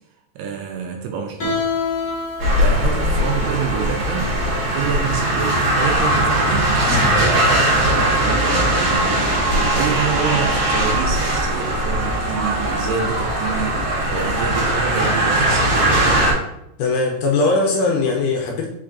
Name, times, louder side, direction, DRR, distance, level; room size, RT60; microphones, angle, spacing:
voice 1, 0.4-1.7 2.6-4.4 4.7-6.8 7.1-9.4 9.7-13.8 14.1-16.1, right 6 dB, 80° right, 3 dB, 2.0 m, -27 dB
Guitar, 1.4-7.1, left 4 dB, 55° left, 1.2 m, -29 dB
sound 1, 2.4-16.3, right 1 dB, 60° right, 1.3 m, -19 dB
voice 2, 16.8-18.7, left 3 dB, 80° left, 0 dB, 1.9 m, -20 dB
4.5 x 4.5 x 2.5 m, 0.81 s
omnidirectional pair, 4.0 m